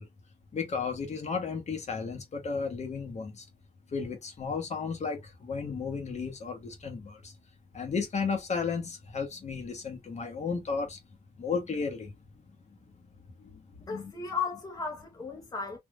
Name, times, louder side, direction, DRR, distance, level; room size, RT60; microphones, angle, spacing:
voice 1, 0.5-3.4 3.9-7.3 7.7-11.0 11.4-12.1 13.9-14.1, left 5 dB, 45° left, 1.1 m, -33 dB
voice 2, 13.9-15.8, left 5 dB, 25° left, 0.9 m, -35 dB
3.5 x 2.6 x 2.3 m
wide cardioid pair, 140°, 16 cm